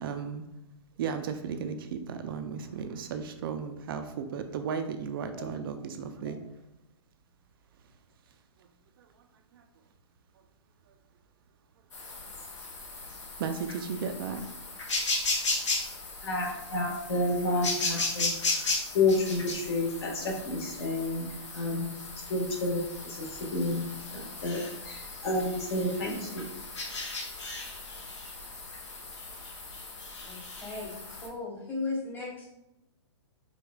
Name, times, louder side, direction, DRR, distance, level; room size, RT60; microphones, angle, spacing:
voice 1, 0.0-0.4 1.0-6.4 9.0-9.1 9.5-9.6 13.4-14.4 26.3-26.4, right 6 dB, 50° right, 7 dB, 0.4 m, -35 dB
sound 1, 11.9-31.3, left 3 dB, 85° left, 0.9 m, -36 dB
voice 2, 16.2-21.9 22.3-23.3 23.5-23.8 24.1-24.6 24.8-26.4, left 2 dB, 60° left, -2 dB, 1.4 m, -30 dB
voice 3, 30.2-32.5, left 3 dB, 15° left, -4 dB, 1.0 m, -36 dB
4.9 x 2.3 x 2.3 m, 0.91 s
hypercardioid pair, 140°, 15 cm